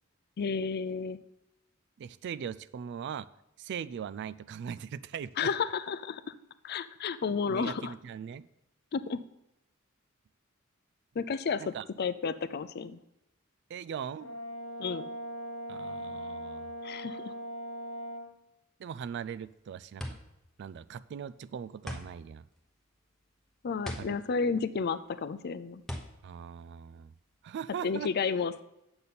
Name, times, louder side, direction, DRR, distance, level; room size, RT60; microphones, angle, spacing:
voice 1, 0.4-1.2 5.4-6.2 6.6-7.9 8.9-9.2 11.2-13.0 14.8-15.0 16.8-17.3 23.6-25.8 27.8-28.6, left 5 dB, 50° left, 13 dB, 0.4 m, -32 dB
voice 2, 2.0-3.3 3.6-5.5 7.5-8.5 11.6-11.8 13.7-14.3 15.7-16.7 18.8-20.0 20.6-22.5 24.0-24.2 26.2-27.1 27.4-28.1, right 7 dB, 55° right, 17 dB, 0.3 m, -40 dB
Brass instrument, 14.2-18.3, right 1 dB, 70° left, 1.0 m, -40 dB
sound 1, 19.2-27.5, equal, ahead, 0.9 m, -43 dB
8.5 x 6.8 x 4.1 m, 0.87 s
head